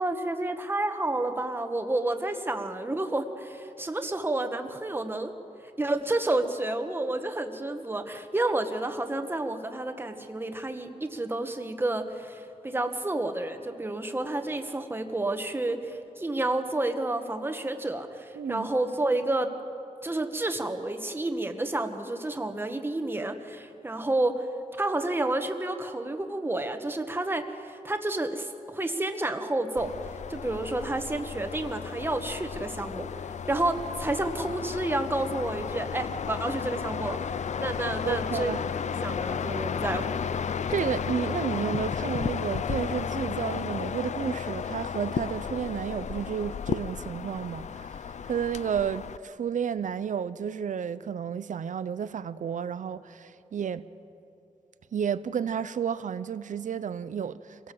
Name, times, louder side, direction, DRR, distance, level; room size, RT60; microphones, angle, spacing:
voice 1, 0.0-5.3 5.8-19.5 20.0-29.9 30.3-33.1 33.5-38.5 39.0-40.0, right 2 dB, 15° right, 1.4 m, -30 dB
voice 2, 18.4-18.7 38.0-38.6 40.7-53.9 54.9-57.7, right 7 dB, 85° right, 0.7 m, -32 dB
sound 1, 29.8-49.2, left 7 dB, 65° left, 0.5 m, -33 dB
26.0 x 18.0 x 7.7 m
wide cardioid pair, 120°, 13 cm